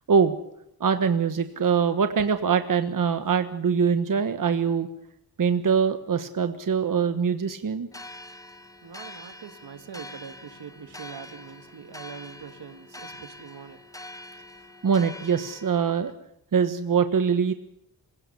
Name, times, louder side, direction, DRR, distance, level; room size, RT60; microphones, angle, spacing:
voice 1, 0.8-4.9 5.4-7.9 14.8-16.1 16.5-17.5, right 6 dB, 55° right, 9 dB, 1.4 m, -23 dB
sound 1, 7.9-16.1, left 1 dB, 10° left, 1.4 m, -44 dB
voice 2, 8.8-13.8, right 7 dB, 85° right, 9 dB, 2.0 m, -43 dB
27.0 x 17.0 x 6.9 m, 0.78 s
wide cardioid pair, 140°, 39 cm